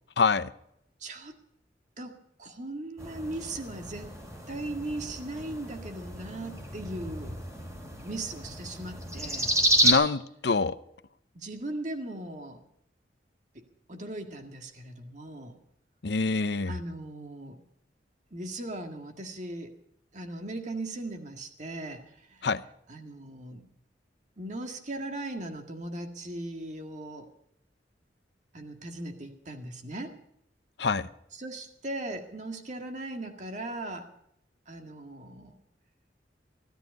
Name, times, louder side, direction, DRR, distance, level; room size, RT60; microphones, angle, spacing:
voice 1, 0.2-0.5 9.8-10.7 16.0-16.7 22.4-22.6 30.8-31.1, left 4 dB, 65° left, 0.7 m, -25 dB
voice 2, 1.0-1.4 2.0-4.2 4.5-7.4 8.0-9.5 11.3-12.6 13.5-13.6 13.9-15.6 16.7-17.6 18.3-19.7 20.1-22.0 22.3-22.5 22.9-23.6 24.4-27.3 28.5-30.1 31.4-34.1 34.7-35.6, right 2 dB, 45° right, 1.9 m, -38 dB
sound 1, 3.0-9.9, right 1 dB, 20° right, 3.1 m, -30 dB
16.0 x 13.0 x 5.3 m
head